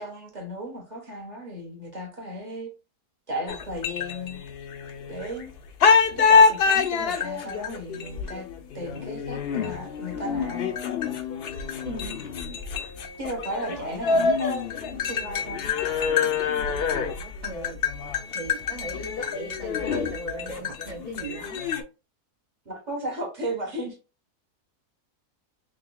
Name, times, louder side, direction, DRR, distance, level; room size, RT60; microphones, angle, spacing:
voice 1, 0.0-2.7 3.3-4.4 5.1-5.5 6.1-8.5 8.7-10.7 13.2-15.7 22.6-24.0, equal, 30° right, 1.1 m, -35 dB
sound 1, 3.5-5.4 5.8-21.8, left 5 dB, 75° left, 0.5 m, -26 dB
voice 2, 11.8-12.2 13.6-13.9 17.4-17.8 18.3-21.6, right 2 dB, 45° right, 0.5 m, -38 dB
3.8 x 3.4 x 2.3 m
omnidirectional pair, 1.7 m